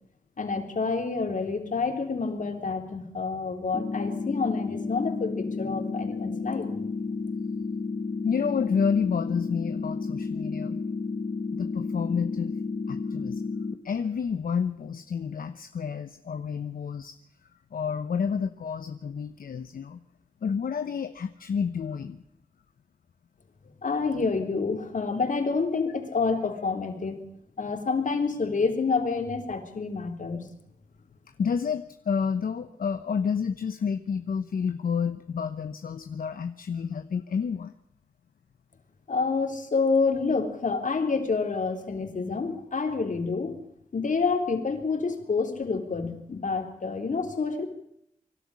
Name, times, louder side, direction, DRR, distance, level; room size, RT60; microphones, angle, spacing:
voice 1, 0.4-6.7 23.8-27.3 27.6-30.4 39.1-43.6 43.9-47.7, left 4 dB, 60° left, 6 dB, 3.6 m, -28 dB
sound 1, 3.7-13.7, left 4 dB, 40° left, 1.9 m, -32 dB
voice 2, 8.2-10.8 11.6-12.5 12.9-13.4 13.8-17.2 17.7-20.0 20.4-22.2 31.4-37.7, left 6 dB, 80° left, 9 dB, 1.0 m, -29 dB
24.5 x 12.5 x 9.7 m, 0.74 s
cardioid pair, 65°, 15 cm